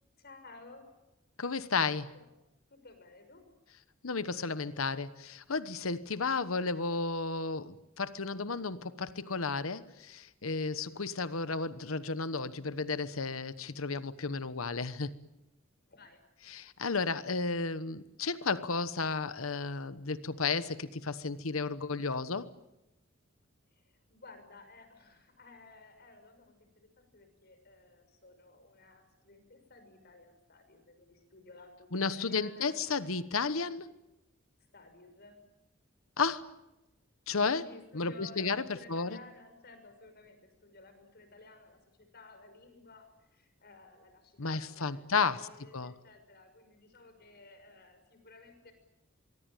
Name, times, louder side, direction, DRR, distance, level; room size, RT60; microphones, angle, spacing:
voice 1, 0.2-0.8 2.1-2.3 2.7-3.5 15.9-16.2 23.7-32.8 34.7-35.4 37.5-48.7, left 3 dB, 50° left, 8 dB, 6.3 m, -55 dB
voice 2, 1.4-2.1 4.0-15.2 16.5-22.5 31.9-33.9 36.2-36.4 37.3-37.6 37.9-38.6 38.9-39.2 44.4-45.5 45.7-45.9, left 4 dB, 85° left, 13 dB, 1.2 m, -33 dB
24.5 x 23.5 x 9.1 m, 0.94 s
head